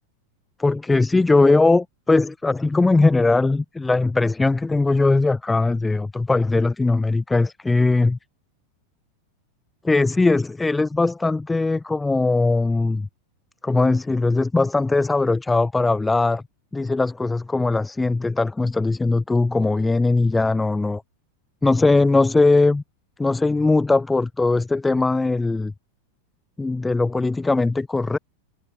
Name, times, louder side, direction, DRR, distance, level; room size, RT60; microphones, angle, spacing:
voice 1, 0.6-8.2 9.8-13.1 13.6-16.4 16.7-21.0 21.6-22.8 23.2-25.7 26.6-28.2, left 3 dB, 10° left, 6.4 m, -20 dB
figure-of-eight pair, 90°, 0 cm